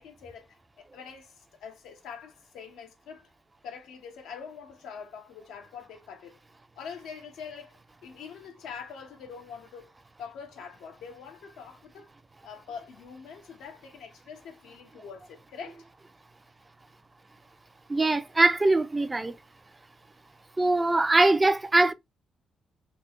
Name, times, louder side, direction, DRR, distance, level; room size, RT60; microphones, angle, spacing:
voice 1, 0.0-3.3 3.6-6.4 6.8-9.9 10.2-12.1 12.4-15.8, left 6 dB, 90° left, 0.9 m, -44 dB
voice 2, 17.9-19.3 20.6-21.9, right 2 dB, 20° right, 0.4 m, -22 dB
3.3 x 2.4 x 2.9 m
cardioid pair, 95°, 0 cm